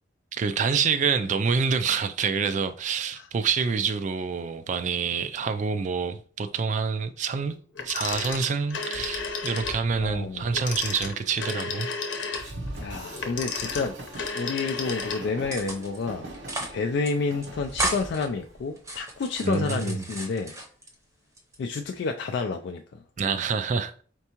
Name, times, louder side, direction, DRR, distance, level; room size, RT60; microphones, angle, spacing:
voice 1, 0.3-7.6 7.8-11.9 19.4-20.1 23.2-23.9, right 5 dB, 40° right, 0.3 m, -27 dB
Telephone, 7.8-9.8 10.5-15.5, left 4 dB, 85° left, 0.8 m, -33 dB
Train, 8.9-19.3, right 1 dB, 70° right, 0.8 m, -42 dB
voice 2, 10.0-10.6 12.8-14.0 14.3-16.3 16.7-20.6 21.6-23.0, left 4 dB, 65° left, 0.3 m, -29 dB
sound 1, 12.2-13.2 13.5-14.4 14.8-15.1 15.5-16.0 16.3-16.8 17.0-17.1 17.4-18.3 18.8-20.9 21.4-22.0, right 2 dB, 15° right, 0.7 m, -34 dB
4.5 x 3.4 x 2.9 m
head